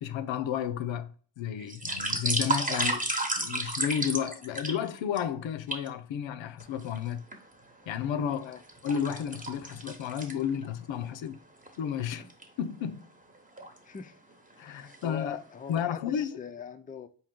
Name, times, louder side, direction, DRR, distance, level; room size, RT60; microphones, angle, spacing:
voice 1, 0.0-3.1 3.3-7.2 7.9-8.6 8.8-11.4 11.8-12.3 12.6-13.1 14.6-15.4 15.7-16.4, left 8 dB, 90° left, 0.6 m, -32 dB
sound 1, 1.6-5.2 5.7-5.9 6.6-7.4 7.9-10.7 11.1-11.2 11.6-11.8 12.2-12.4 13.3-13.8 14.3-14.5 14.8-15.4 15.8-15.9, right 2 dB, 20° right, 0.9 m, -32 dB
voice 2, 13.8-14.2 14.6-17.1, left 7 dB, 20° left, 0.4 m, -42 dB
4.5 x 2.8 x 3.6 m
wide cardioid pair, 105°, 44 cm